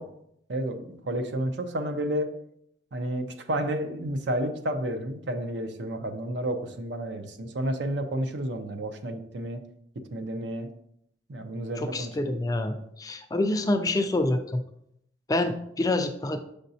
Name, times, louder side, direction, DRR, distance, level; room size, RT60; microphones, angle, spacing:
voice 1, 0.5-2.3 2.9-9.6 10.1-10.7 11.3-12.4, right 1 dB, 60° right, 7 dB, 0.6 m, -31 dB
voice 2, 11.8-14.6 15.3-16.4, left 2 dB, 20° left, 6 dB, 0.3 m, -27 dB
6.7 x 5.1 x 2.7 m, 0.75 s
head